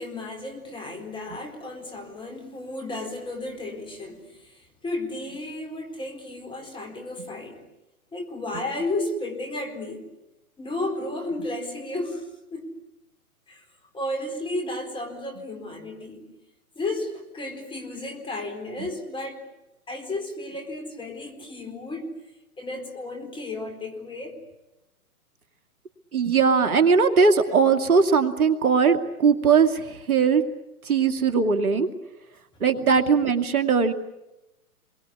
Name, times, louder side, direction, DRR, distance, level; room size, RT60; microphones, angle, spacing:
voice 1, 0.0-7.6 8.1-10.1 10.6-12.7 13.5-13.6 13.9-16.3 16.8-19.5 19.9-22.1 22.6-24.4, left 2 dB, 10° left, 4 dB, 4.4 m, -33 dB
voice 2, 26.1-30.4 30.8-31.9 32.6-33.9, right 5 dB, 75° right, 8 dB, 2.7 m, -20 dB
28.5 x 23.0 x 8.6 m, 0.96 s
hypercardioid pair, 130°, 44 cm